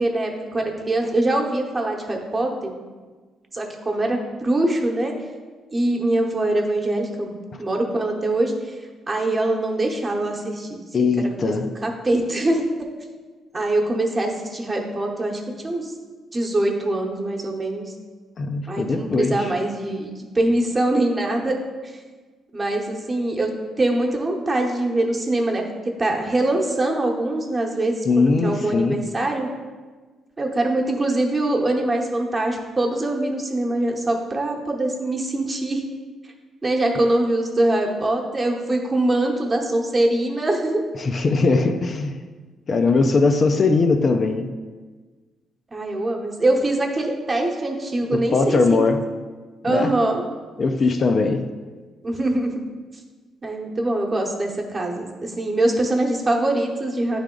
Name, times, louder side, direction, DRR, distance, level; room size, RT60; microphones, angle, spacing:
voice 1, 0.0-2.7 3.5-4.2 4.4-5.1 5.7-8.8 9.1-10.8 11.4-12.6 13.5-15.9 16.3-17.9 18.7-21.6 21.8-22.0 22.5-23.5 23.8-25.6 26.0-29.5 30.4-35.8 36.6-40.8 45.7-48.9 49.6-50.2 52.0-52.5 53.4-57.2, right 1 dB, 30° right, 1 dB, 1.0 m, -23 dB
voice 2, 10.9-11.7 18.4-19.5 28.0-29.0 40.9-42.2 42.7-44.5 48.1-49.1 49.7-50.0 50.6-51.5, left 3 dB, 45° left, 6 dB, 0.4 m, -20 dB
8.8 x 3.4 x 3.8 m, 1.4 s
cardioid pair, 90°, 0 cm